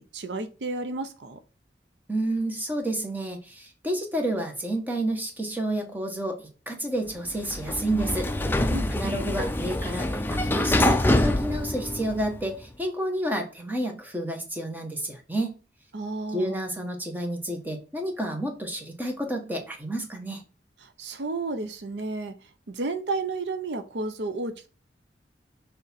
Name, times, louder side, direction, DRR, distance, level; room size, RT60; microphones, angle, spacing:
voice 1, 0.0-1.4 8.7-9.2 15.9-16.7 20.8-24.7, right 3 dB, 75° right, 0.7 m, -32 dB
voice 2, 2.1-8.3 8.9-15.5 16.3-20.4, right 1 dB, 10° right, 1.3 m, -30 dB
Sliding door, 7.3-12.5, left 1 dB, 10° left, 0.6 m, -25 dB
6.5 x 3.5 x 4.2 m
head